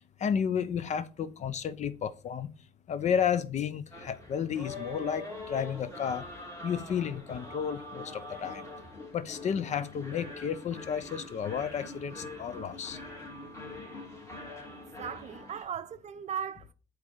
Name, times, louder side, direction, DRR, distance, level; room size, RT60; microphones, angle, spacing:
voice 1, 0.2-2.5 2.9-6.2 6.6-8.7 9.1-13.0, left 8 dB, 45° left, 0.6 m, -32 dB
sound 1, 3.9-15.6, left 2 dB, 15° left, 2.3 m, -44 dB
voice 2, 15.0-16.7, right 8 dB, 45° right, 0.6 m, -37 dB
8.1 x 3.2 x 5.0 m
cardioid pair, 110°, 17 cm